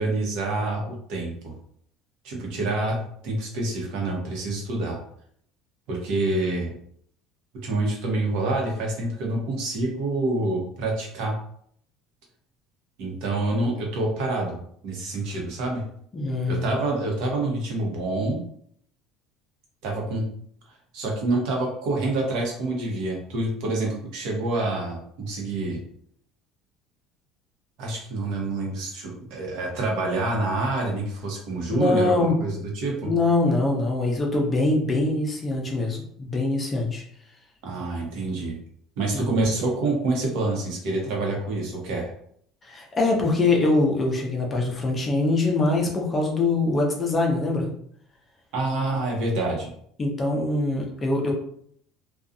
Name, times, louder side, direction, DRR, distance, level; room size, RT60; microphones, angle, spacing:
voice 1, 0.0-1.3 2.2-3.0 3.2-5.0 5.9-6.7 7.6-11.4 13.0-14.6 14.8-15.8 16.5-18.4 19.8-20.3 20.9-25.8 27.8-33.1 37.6-38.6 39.0-42.1 48.5-49.7, right 2 dB, 70° right, -1 dB, 0.9 m, -27 dB
voice 2, 16.1-16.6 31.7-32.4 33.0-37.0 39.2-39.3 42.6-47.7 50.0-51.3, left 2 dB, 20° left, 0 dB, 0.5 m, -23 dB
2.5 x 2.3 x 2.6 m, 0.66 s
cardioid pair, 145°, 0 cm